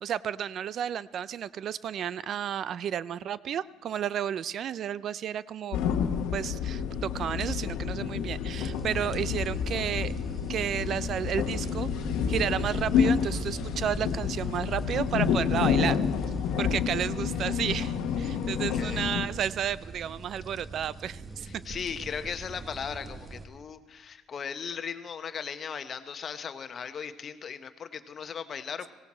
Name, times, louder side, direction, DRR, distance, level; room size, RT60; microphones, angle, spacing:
voice 1, 0.0-5.8 6.3-10.1 10.5-11.9 12.3-16.0 16.6-21.5, right 9 dB, 60° right, 19 dB, 0.4 m, -32 dB
sound 1, 5.7-19.3, left 7 dB, 80° left, 1.0 m, -29 dB
sound 2, 8.5-23.4, right 3 dB, 35° right, 1.5 m, -43 dB
sound 3, 13.4-17.8, left 1 dB, 5° left, 3.0 m, -46 dB
voice 2, 18.7-19.1 21.4-28.9, left 7 dB, 50° left, 10 dB, 0.9 m, -37 dB
18.0 x 16.5 x 4.3 m, 1.2 s
supercardioid pair, 75°, 0 cm